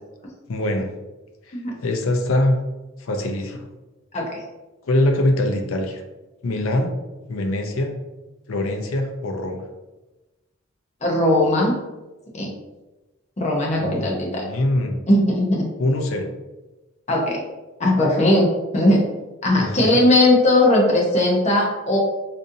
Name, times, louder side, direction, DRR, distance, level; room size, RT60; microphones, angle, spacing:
voice 1, 0.5-0.9 1.5-1.6 1.8-2.6 3.0-3.7 4.8-6.0 6.4-6.9 7.3-8.0 8.5-9.6 13.8-15.0 15.8-16.3 19.6-19.9, left 1 dB, 80° left, 4 dB, 0.5 m, -23 dB
voice 2, 11.0-11.8 12.3-12.5 13.4-14.4 15.1-15.7 17.1-17.4 17.8-19.0 19.4-22.0, left 1 dB, 35° left, -2 dB, 0.7 m, -18 dB
4.0 x 2.6 x 2.6 m, 1.1 s
head